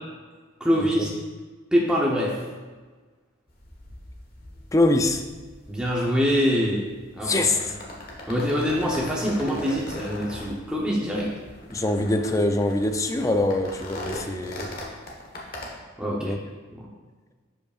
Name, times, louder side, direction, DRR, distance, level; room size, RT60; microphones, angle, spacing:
voice 1, 0.6-1.1 1.7-2.3 5.7-6.8 7.2-7.4 8.3-11.3 16.0-16.3 16.7-16.8, equal, 5° right, -5 dB, 0.8 m, -24 dB
sound 1, 3.5-15.7, left 1 dB, 45° left, 1.3 m, -40 dB
voice 2, 4.7-5.2 7.2-7.7 11.7-14.7 16.2-16.4, left 2 dB, 15° left, 6 dB, 0.4 m, -24 dB
11.5 x 5.3 x 2.4 m, 1.4 s
head